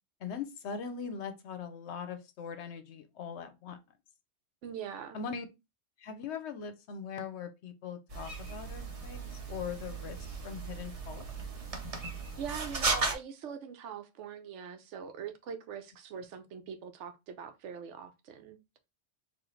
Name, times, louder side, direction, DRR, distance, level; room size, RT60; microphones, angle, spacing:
voice 1, 0.2-3.8 5.1-5.5 6.0-10.2 10.4-11.3, left 6 dB, 70° left, 0.9 m, -41 dB
voice 2, 4.6-5.2 12.0-18.6, right 7 dB, 90° right, 1.0 m, -42 dB
sound 1, 8.1-13.1, right 3 dB, 35° right, 0.7 m, -36 dB
4.2 x 2.5 x 3.1 m
omnidirectional pair, 1.2 m